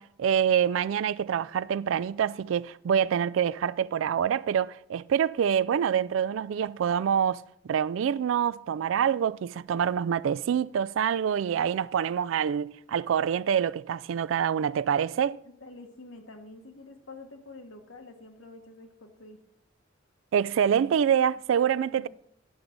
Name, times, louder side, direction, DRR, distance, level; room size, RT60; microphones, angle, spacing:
voice 1, 0.0-15.4 20.3-22.1, right 8 dB, 70° right, 0.3 m, -26 dB
voice 2, 15.4-19.4 21.8-22.1, left 2 dB, 80° left, 1.4 m, -47 dB
10.5 x 6.0 x 5.1 m
head